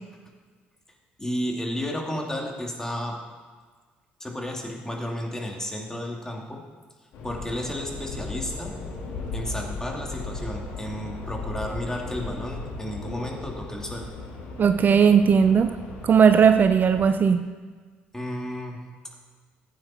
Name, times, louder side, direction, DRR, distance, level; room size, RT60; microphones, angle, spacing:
voice 1, 1.2-3.2 4.2-6.6 7.2-8.7 9.3-14.1 18.1-18.8, left 1 dB, 15° left, 0 dB, 2.9 m, -32 dB
sound 1, 7.1-17.1, left 3 dB, 70° left, 2.9 m, -37 dB
voice 2, 14.6-15.8 16.0-17.5, right 7 dB, 45° right, 9 dB, 0.6 m, -17 dB
15.0 x 9.4 x 4.5 m, 1.5 s
supercardioid pair, 65°, 4 cm